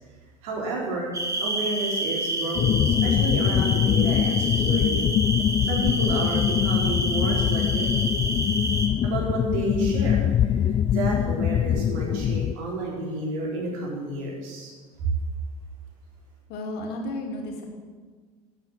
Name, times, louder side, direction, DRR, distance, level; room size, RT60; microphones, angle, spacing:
voice 1, 0.4-1.1 1.4-5.1 5.6-7.9 9.0-14.7 15.0-15.1, right 2 dB, 65° right, -3 dB, 4.3 m, -31 dB
sound 1, 1.1-8.9, right 1 dB, 15° right, 2.0 m, -29 dB
sound 2, 2.6-12.5, left 10 dB, 30° left, 0.4 m, -23 dB
voice 2, 16.5-17.6, left 1 dB, 55° left, 1 dB, 3.0 m, -33 dB
12.0 x 8.7 x 7.6 m, 1.5 s
hypercardioid pair, 75°, 20 cm